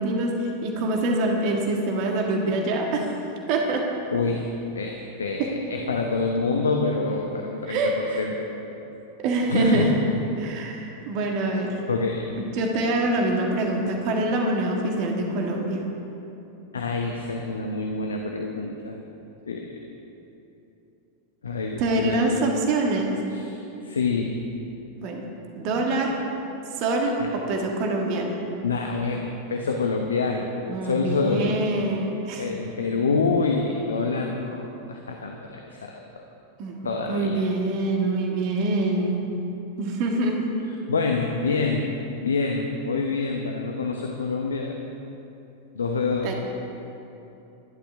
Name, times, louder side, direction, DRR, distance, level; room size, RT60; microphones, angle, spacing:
voice 1, 0.0-3.1 3.5-3.9 5.4-5.5 7.7-8.3 9.2-9.9 10.4-11.8 12.4-15.8 21.8-23.2 25.0-25.2 25.6-26.2 26.8-28.4 30.7-32.5 36.6-36.8 37.1-39.2 39.8-40.5 46.2-46.3, right 2 dB, 45° right, 1 dB, 1.9 m, -25 dB
voice 2, 4.1-4.5 4.7-8.9 9.5-10.0 11.9-12.3 16.7-19.0 19.5-19.9 21.4-22.5 23.3-24.4 27.2-27.3 28.6-31.7 32.4-36.2 36.8-37.4 40.9-41.9 42.2-44.7 45.7-46.3, left 3 dB, 70° left, 2 dB, 1.1 m, -27 dB
25.0 x 11.5 x 3.6 m, 2.9 s
figure-of-eight pair, 90°, 0 cm